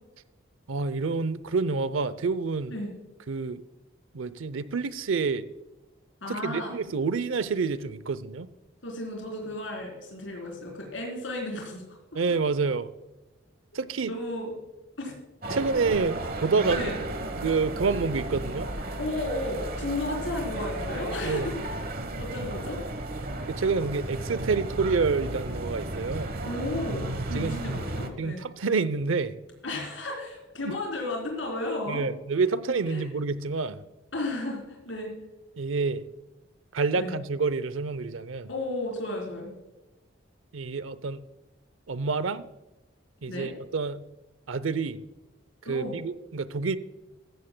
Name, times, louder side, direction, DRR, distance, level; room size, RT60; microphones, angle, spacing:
voice 1, 0.7-2.7 3.3-3.6 4.1-5.5 6.3-8.5 12.1-12.9 13.7-14.1 15.5-16.8 17.3-18.7 21.2-21.5 23.5-26.3 27.3-27.6 28.2-29.4 30.7-30.8 31.9-33.8 35.6-36.1 36.7-38.5 40.5-41.2 41.9-42.4 43.2-44.0 44.5-45.0 45.6-46.8, right 4 dB, 90° right, 16 dB, 0.6 m, -28 dB
voice 2, 6.2-6.8 8.8-11.8 12.1-12.2 14.0-14.5 15.0-15.1 15.5-15.6 16.7-17.0 19.0-21.6 22.2-22.8 26.4-28.4 29.6-32.0 32.9-33.0 34.1-35.1 37.0-37.1 38.5-39.6 43.3-43.5 45.6-46.0, left 1 dB, 75° left, -1 dB, 3.8 m, -33 dB
sound 1, 15.4-28.1, right 1 dB, 50° right, 1.1 m, -34 dB
14.5 x 14.5 x 2.2 m, 1.0 s
head